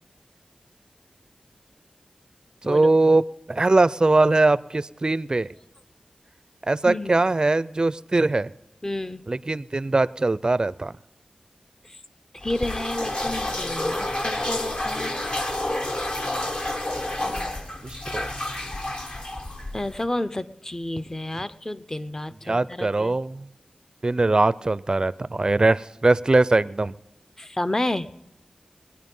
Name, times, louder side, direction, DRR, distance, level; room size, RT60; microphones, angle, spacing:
voice 1, 2.6-5.5 6.6-8.5 9.3-10.9 17.8-18.3 22.5-23.5 24.0-26.9, right 2 dB, 35° right, 17 dB, 0.4 m, -21 dB
voice 2, 6.9-7.2 8.8-9.2 11.8-12.0 12.3-15.1 17.2-17.7 19.7-23.2 27.4-28.1, left 1 dB, 25° left, 13 dB, 0.6 m, -31 dB
sound 1, 12.4-20.0, left 1 dB, 50° left, 1.5 m, -29 dB
19.5 x 9.9 x 5.4 m, 0.93 s
wide cardioid pair, 60°, 2 cm